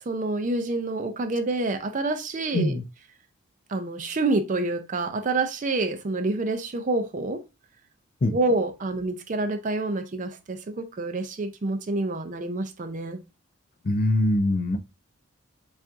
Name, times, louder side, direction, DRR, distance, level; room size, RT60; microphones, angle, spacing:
voice 1, 0.1-2.8 3.7-7.4 8.3-13.2, right 2 dB, 35° right, 0.4 m, -27 dB
voice 2, 13.8-14.8, left 1 dB, 40° left, 0.4 m, -23 dB
7.1 x 2.4 x 2.5 m
head